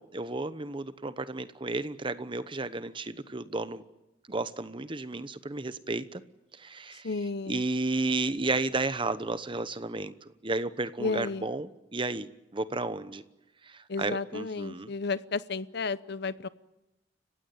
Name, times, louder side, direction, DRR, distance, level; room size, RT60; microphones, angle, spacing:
voice 1, 0.0-3.8 4.3-6.2 6.6-7.1 7.5-10.1 10.4-13.2 13.7-14.9, right 3 dB, 30° right, 1.0 m, -32 dB
voice 2, 7.0-7.6 11.0-11.5 13.9-16.5, left 3 dB, 60° left, 0.8 m, -32 dB
30.0 x 16.5 x 9.5 m
head